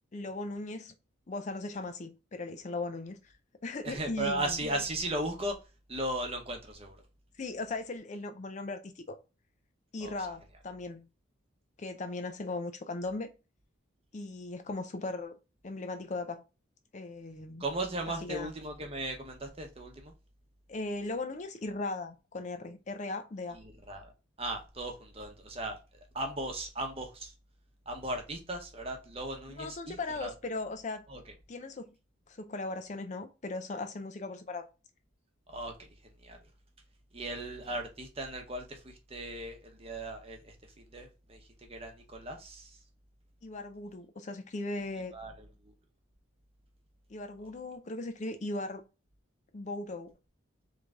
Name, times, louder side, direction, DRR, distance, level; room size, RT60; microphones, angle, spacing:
voice 1, 0.1-0.9 1.3-3.3 3.6-4.6 7.4-9.2 9.9-11.1 11.8-13.3 14.1-15.4 15.6-16.4 16.9-17.6 18.2-18.5 20.7-23.6 29.6-31.1 31.5-31.9 32.3-34.7 43.4-45.1 47.1-48.8 49.5-50.1, left 2 dB, 35° left, 0.4 m, -38 dB
voice 2, 3.8-5.5 5.9-7.0 10.0-10.1 17.6-20.1 23.9-24.1 24.4-25.8 26.1-27.3 27.9-30.3 31.1-31.2 35.5-35.9 36.2-36.4 37.1-40.5 40.9-41.4 41.7-42.8 45.1-45.3, right 1 dB, 30° right, 0.9 m, -37 dB
3.7 x 3.2 x 3.4 m
head